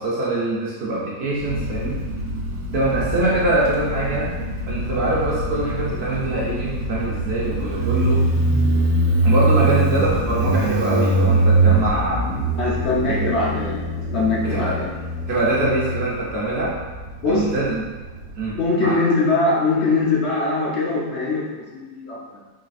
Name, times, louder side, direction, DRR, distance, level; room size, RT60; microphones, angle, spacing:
voice 1, 0.0-2.0 2.7-4.3 4.7-8.3 9.2-12.2 13.0-13.3 14.4-14.8 15.3-16.8 17.3-17.8 18.3-19.0, right 2 dB, 55° right, -5 dB, 0.8 m, -23 dB
Motorcycle, 1.4-18.6, right 2 dB, 80° right, 1.1 m, -23 dB
voice 2, 12.6-14.9 17.2-17.5 18.5-21.4 21.7-22.4, left 3 dB, 55° left, -5 dB, 0.9 m, -22 dB
4.0 x 2.7 x 2.5 m, 1.3 s
omnidirectional pair, 1.5 m